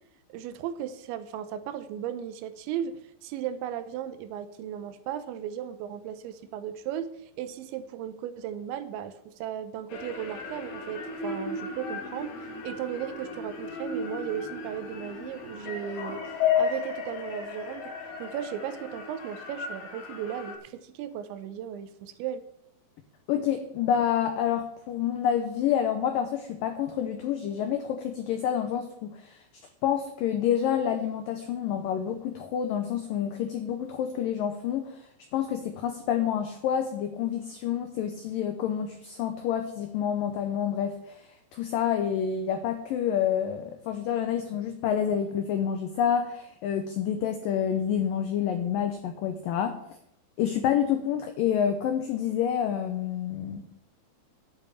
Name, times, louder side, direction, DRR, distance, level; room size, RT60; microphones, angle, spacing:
voice 1, 0.3-7.1 7.4-16.2 16.6-17.9 18.2-22.4, right 10 dB, 90° right, 11 dB, 3.2 m, -36 dB
sound 1, 9.9-20.6, left 6 dB, 60° left, 2.7 m, -34 dB
voice 2, 23.3-29.5 29.8-49.8 50.4-53.6, left 9 dB, 90° left, 7 dB, 1.9 m, -28 dB
11.0 x 5.4 x 8.4 m, 0.76 s
omnidirectional pair, 5.1 m